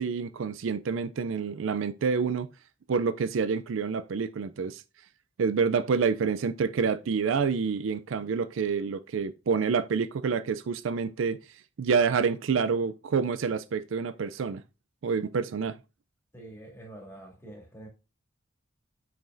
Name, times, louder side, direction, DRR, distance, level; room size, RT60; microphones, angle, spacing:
voice 1, 0.0-2.5 2.9-4.8 5.4-11.4 11.8-14.6 15.0-15.7, right 5 dB, 65° right, 0.4 m, -28 dB
voice 2, 16.3-17.9, right 1 dB, 10° left, 2.9 m, -46 dB
7.3 x 5.8 x 2.6 m
head